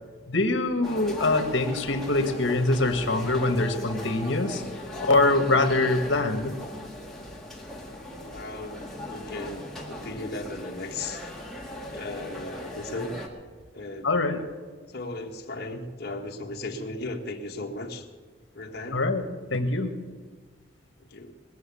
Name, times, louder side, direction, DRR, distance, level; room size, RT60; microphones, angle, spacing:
voice 1, 0.3-4.6 5.1-6.5 14.0-14.4 18.9-19.2 19.5-19.9, left 2 dB, 70° left, 6 dB, 1.6 m, -24 dB
sound 1, 0.8-13.3, left 1 dB, ahead, 1.8 m, -38 dB
voice 2, 8.3-8.8 9.1-11.3 11.9-13.2 13.7-14.1 14.9-18.1 18.5-19.0 21.0-21.3, left 2 dB, 50° left, 1 dB, 1.5 m, -36 dB
20.5 x 7.0 x 8.5 m, 1.5 s
head